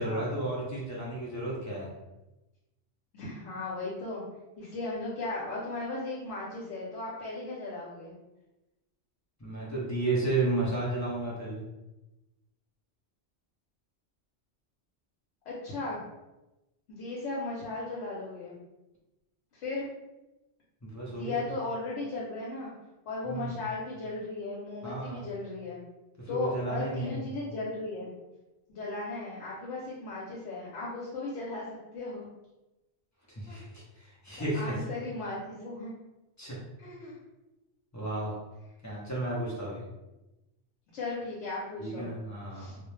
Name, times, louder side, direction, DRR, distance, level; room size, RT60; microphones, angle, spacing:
voice 1, 0.0-1.9 9.4-11.6 20.8-21.4 23.3-23.6 24.8-25.3 26.3-27.3 33.3-33.7 34.0-34.8 36.4-36.6 37.9-38.4 38.8-39.8 41.8-42.8, right 2 dB, 25° left, -6 dB, 0.4 m, -32 dB
voice 2, 3.1-4.2 4.6-8.1 15.5-16.0 16.9-18.5 19.5-19.9 21.1-22.7 23.1-25.8 26.3-28.1 28.7-31.7 31.9-32.3 33.5-33.6 34.5-35.9 36.8-37.2 40.9-42.1 42.5-42.8, left 2 dB, 75° left, -6 dB, 1.0 m, -36 dB
2.3 x 2.1 x 3.0 m, 1.0 s
omnidirectional pair, 1.2 m